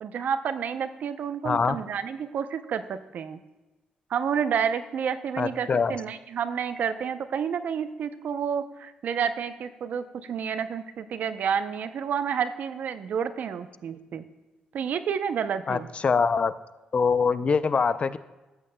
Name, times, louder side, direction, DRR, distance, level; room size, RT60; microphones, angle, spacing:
voice 1, 0.0-3.4 4.1-14.2 14.7-15.9, right 7 dB, 65° right, 11 dB, 0.5 m, -30 dB
voice 2, 1.4-1.8 5.4-6.0 15.7-16.5 16.9-18.2, left 5 dB, 45° left, 15 dB, 0.4 m, -24 dB
13.5 x 8.5 x 2.2 m, 1.1 s
cardioid pair, 70°, 3 cm